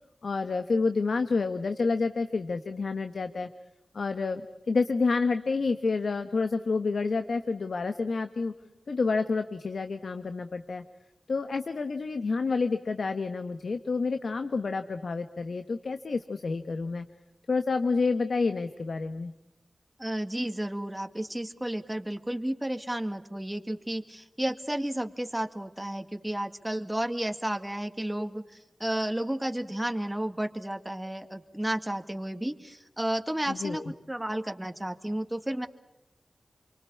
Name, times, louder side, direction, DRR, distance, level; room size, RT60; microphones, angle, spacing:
voice 1, 0.2-3.5 3.9-4.4 4.7-8.5 8.9-10.8 11.3-17.1 17.5-19.3 33.5-33.9, left 4 dB, 75° left, 9 dB, 1.2 m, -29 dB
voice 2, 20.0-35.7, right 1 dB, 10° right, 7 dB, 2.0 m, -32 dB
28.0 x 24.5 x 8.4 m, 0.90 s
wide cardioid pair, 60°, 0 cm